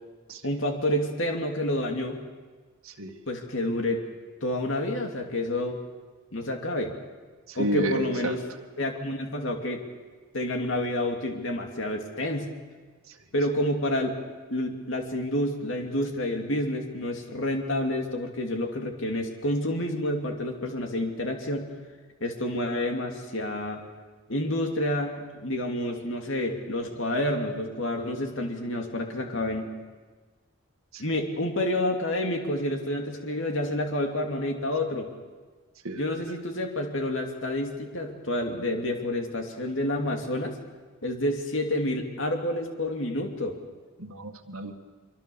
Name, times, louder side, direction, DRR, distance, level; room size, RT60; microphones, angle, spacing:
voice 1, 0.4-2.2 3.3-4.0 4.4-5.8 6.3-6.9 7.6-8.4 8.8-9.8 10.3-12.5 13.3-14.2 14.5-21.7 22.2-23.8 24.3-29.7 31.0-35.1 36.0-40.6 41.0-43.6, left 1 dB, 65° left, 3 dB, 2.6 m, -29 dB
voice 2, 7.5-8.3 35.8-36.0 44.0-44.7, equal, 85° right, 2 dB, 1.9 m, -30 dB
24.5 x 24.0 x 7.1 m, 1.4 s
head